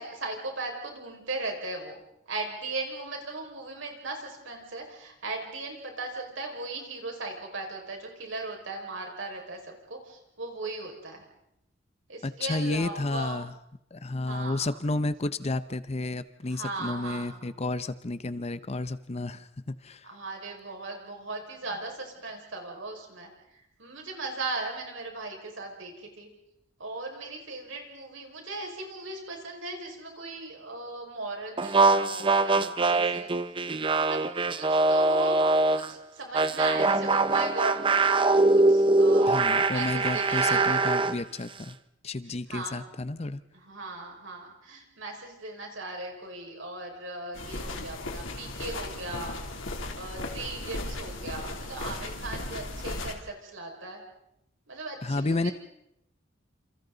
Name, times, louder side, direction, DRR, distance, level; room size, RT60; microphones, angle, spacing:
voice 1, 0.0-2.0 2.3-11.2 12.1-13.4 14.2-14.8 16.5-17.6 20.0-26.3 26.8-33.3 33.9-34.2 34.5-38.3 38.5-40.9 42.2-42.8 43.5-49.6 50.0-54.0 54.7-55.5, right 2 dB, 70° right, 1 dB, 5.5 m, -38 dB
voice 2, 12.2-13.5 13.9-20.1 39.3-41.8 42.0-43.4 55.0-55.5, left 2 dB, 30° left, 13 dB, 0.7 m, -31 dB
sound 1, 31.6-35.9 36.3-41.2, right 3 dB, 25° right, 0.8 m, -23 dB
sound 2, 47.3-53.1, left 2 dB, 75° left, 3.1 m, -36 dB
28.5 x 28.0 x 4.0 m, 0.81 s
head